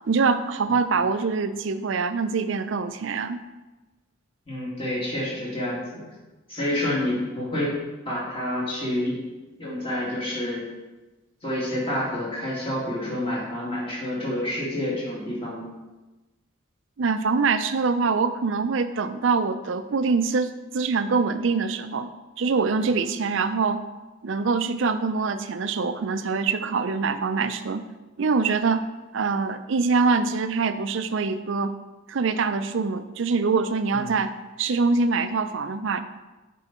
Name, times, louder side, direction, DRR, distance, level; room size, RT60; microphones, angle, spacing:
voice 1, 0.1-3.4 17.0-22.1 22.4-23.8 24.2-27.8 28.2-28.8 29.1-31.7 32.1-34.3 34.6-36.0, right 4 dB, 60° right, 11 dB, 0.4 m, -24 dB
voice 2, 4.5-5.8 6.5-7.8 8.1-9.1 9.6-10.6 11.4-15.6 33.9-34.0, left 1 dB, 25° left, -6 dB, 2.3 m, -28 dB
8.0 x 4.6 x 4.3 m, 1.1 s
head